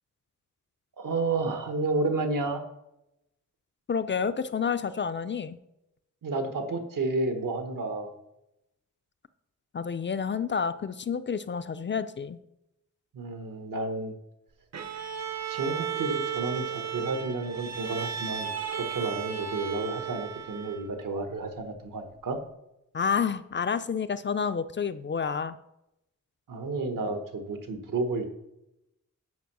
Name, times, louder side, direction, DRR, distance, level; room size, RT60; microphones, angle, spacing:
voice 1, 1.0-2.6 6.2-8.1 13.1-14.1 15.5-22.4 26.5-28.3, right 3 dB, 80° right, 6 dB, 1.2 m, -31 dB
voice 2, 3.9-5.6 9.7-12.4 22.9-25.6, left 6 dB, 35° left, 12 dB, 0.4 m, -29 dB
Bowed string instrument, 14.7-21.0, right 8 dB, 55° right, 0.7 m, -35 dB
9.5 x 5.3 x 6.0 m, 0.88 s
wide cardioid pair, 155°, 32 cm